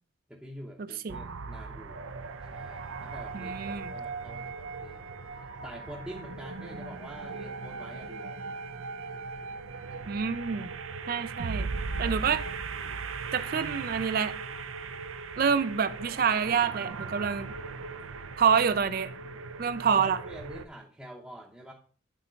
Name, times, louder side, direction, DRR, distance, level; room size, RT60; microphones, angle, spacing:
voice 1, 0.3-2.0 2.5-5.1 5.6-8.6 10.0-10.3 12.0-12.2 12.7-13.1 19.8-21.7, equal, 5° right, -2 dB, 0.7 m, -46 dB
sound 1, 1.1-20.7, right 4 dB, 90° right, 0.7 m, -38 dB
voice 2, 3.3-3.9 10.1-10.7 11.1-11.7 12.0-12.4 13.3-14.3 15.4-17.5 18.4-19.1 19.6-20.2, right 6 dB, 45° right, 13 dB, 0.4 m, -27 dB
9.0 x 4.2 x 4.4 m, 0.43 s
head